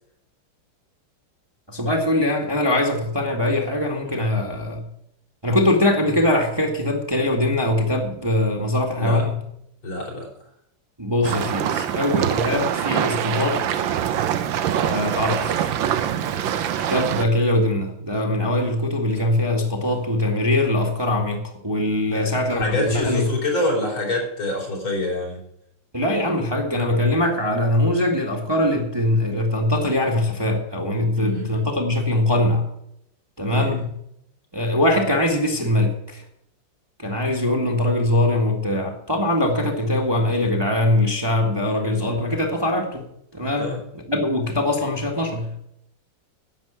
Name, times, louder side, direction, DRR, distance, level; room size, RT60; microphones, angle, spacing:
voice 1, 1.7-4.8 5.4-9.4 11.0-13.9 14.8-15.7 16.9-23.3 25.9-32.7 33.4-33.9 34.5-36.2 37.0-43.0 43.3-45.5, left 1 dB, 15° right, 2 dB, 1.6 m, -22 dB
voice 2, 9.8-10.3 22.1-25.4 31.2-31.6 33.5-33.7 43.6-43.8, left 1 dB, 70° left, -2 dB, 4.8 m, -26 dB
sound 1, 11.2-17.2, right 9 dB, 70° right, 1.5 m, -24 dB
11.0 x 7.5 x 8.8 m, 0.75 s
omnidirectional pair, 2.4 m